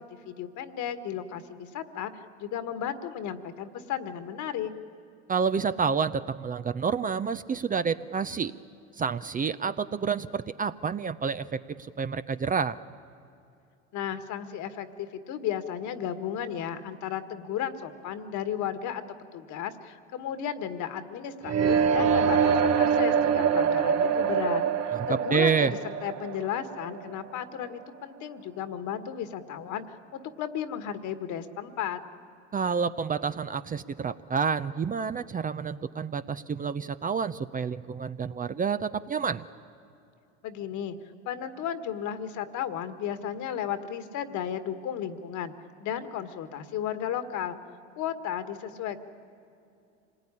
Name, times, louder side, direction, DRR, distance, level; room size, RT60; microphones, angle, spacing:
voice 1, 0.3-4.7 13.9-19.0 19.3-32.0 40.4-41.0 41.3-45.5 45.8-47.6 48.0-49.0, left 9 dB, 55° left, 10 dB, 1.8 m, -34 dB
voice 2, 5.3-8.5 9.0-12.8 24.9-25.7 32.5-39.4, right 6 dB, 25° right, 12 dB, 0.7 m, -29 dB
sound 1, 21.4-27.4, right 6 dB, 50° right, 1.2 m, -25 dB
26.0 x 19.0 x 10.0 m, 2.6 s
hypercardioid pair, 85°, 35 cm